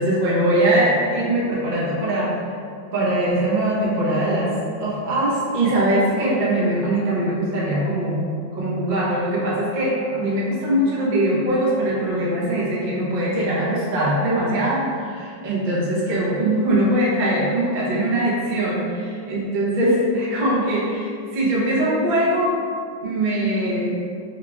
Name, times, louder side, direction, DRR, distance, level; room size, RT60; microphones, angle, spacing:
voice 1, 0.0-2.3 2.9-22.5 23.0-24.0, right 1 dB, 45° right, -7 dB, 0.6 m, -21 dB
3.7 x 3.6 x 3.4 m, 2.3 s
omnidirectional pair, 2.1 m